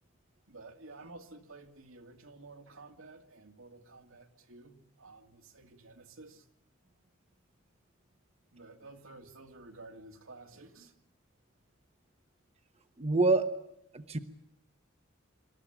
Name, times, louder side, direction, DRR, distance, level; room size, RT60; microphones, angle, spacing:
voice 1, 0.5-6.5 8.5-11.0, right 3 dB, 80° right, 4 dB, 2.5 m, -52 dB
voice 2, 13.0-13.6 13.9-14.2, right 3 dB, 30° right, 8 dB, 1.0 m, -26 dB
26.0 x 13.5 x 9.9 m, 0.80 s
head